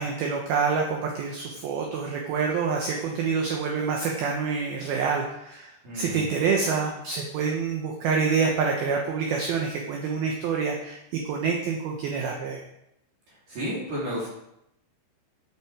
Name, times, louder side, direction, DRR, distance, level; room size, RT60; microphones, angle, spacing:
voice 1, 0.0-12.6, right 5 dB, 75° right, 1 dB, 2.4 m, -27 dB
voice 2, 5.8-6.3 13.3-14.3, equal, 45° right, -7 dB, 4.1 m, -32 dB
11.0 x 7.7 x 4.8 m, 0.82 s
omnidirectional pair, 5.5 m